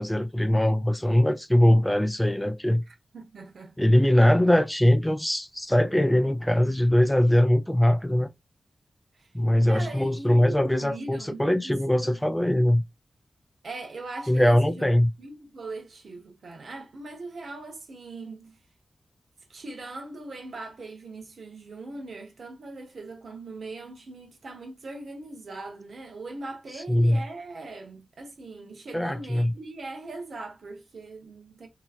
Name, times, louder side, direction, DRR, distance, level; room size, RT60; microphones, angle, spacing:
voice 1, 0.0-2.8 3.8-8.3 9.3-12.8 14.3-15.1 26.9-27.2 28.9-29.5, left 1 dB, 5° left, 0.3 m, -21 dB
voice 2, 2.9-3.8 9.1-9.3 9.7-12.4 13.6-14.9 15.2-18.6 19.5-31.7, right 2 dB, 75° right, 0.9 m, -40 dB
2.9 x 2.7 x 2.4 m
wide cardioid pair, 105°, 0 cm